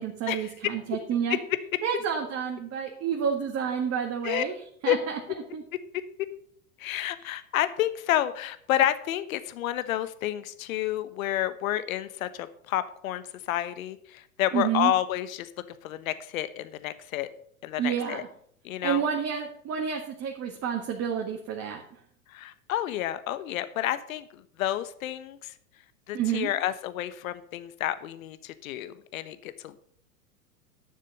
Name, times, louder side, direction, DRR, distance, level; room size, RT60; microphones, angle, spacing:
voice 1, 0.0-1.4 1.8-4.5 4.8-5.2 5.5-5.6 14.5-14.9 17.8-18.3 18.8-21.8 26.1-26.5, right 8 dB, 30° right, 1 dB, 1.9 m, -29 dB
voice 2, 6.8-17.3 17.6-18.2 18.6-19.0 22.3-25.5 26.1-29.8, left 12 dB, 65° left, 13 dB, 1.1 m, -30 dB
11.0 x 6.6 x 6.6 m, 0.64 s
hypercardioid pair, 100°, 44 cm